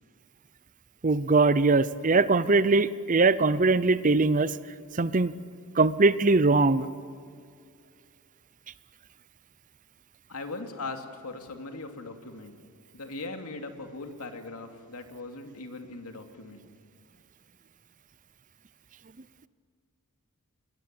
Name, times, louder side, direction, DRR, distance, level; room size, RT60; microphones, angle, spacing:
voice 1, 1.0-4.5 5.0-5.3 5.8-6.9, right 3 dB, 35° right, 16 dB, 0.7 m, -21 dB
voice 2, 10.3-12.5 12.9-16.7, left 3 dB, 85° left, 5 dB, 2.6 m, -39 dB
21.0 x 21.0 x 9.6 m, 2.2 s
head